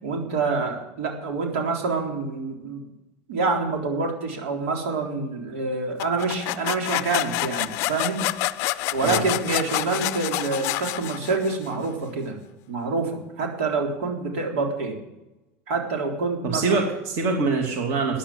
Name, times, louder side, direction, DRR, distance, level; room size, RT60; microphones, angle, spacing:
voice 1, 0.0-2.8 3.3-8.2 8.9-12.4 12.7-15.0 15.7-16.6, right 4 dB, 85° right, 1 dB, 3.8 m, -27 dB
sound 1, 6.0-11.7, left 18 dB, 45° left, 0.5 m, -28 dB
voice 2, 16.4-18.2, right 4 dB, 40° right, 2 dB, 2.5 m, -24 dB
13.5 x 10.0 x 8.8 m, 0.98 s
supercardioid pair, 170°, 7 cm